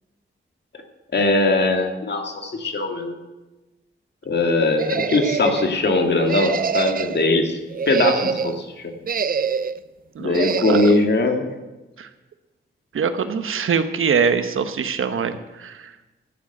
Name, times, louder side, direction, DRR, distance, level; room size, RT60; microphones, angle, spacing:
voice 1, 1.1-3.2 4.2-7.6 7.9-9.0 10.2-11.5, left 2 dB, 55° left, 3 dB, 2.2 m, -20 dB
sound 1, 4.8-5.7 6.3-7.2 7.7-8.6 9.0-9.8 10.3-11.0, right 6 dB, 45° right, 0.5 m, -25 dB
voice 2, 10.1-10.9 12.0-12.1 12.9-15.9, right 6 dB, 85° right, 9 dB, 1.1 m, -23 dB
13.5 x 7.5 x 8.9 m, 1.1 s
wide cardioid pair, 95°, 21 cm